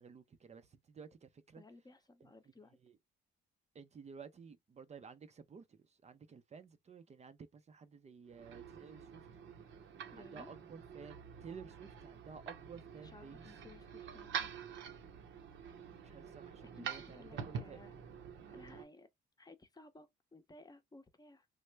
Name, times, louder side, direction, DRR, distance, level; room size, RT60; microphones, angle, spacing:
voice 1, 0.0-1.6 2.8-3.0 3.7-9.2 10.1-13.5 16.0-17.8, right 6 dB, 35° right, 0.5 m, -53 dB
voice 2, 1.6-2.8 10.1-10.5 13.0-14.5 16.6-17.9 18.5-19.1 19.4-21.5, left 2 dB, 20° left, 0.7 m, -58 dB
sound 1, 8.3-18.8, right 7 dB, 70° right, 0.8 m, -47 dB
3.2 x 2.1 x 3.3 m
cardioid pair, 90°, 20 cm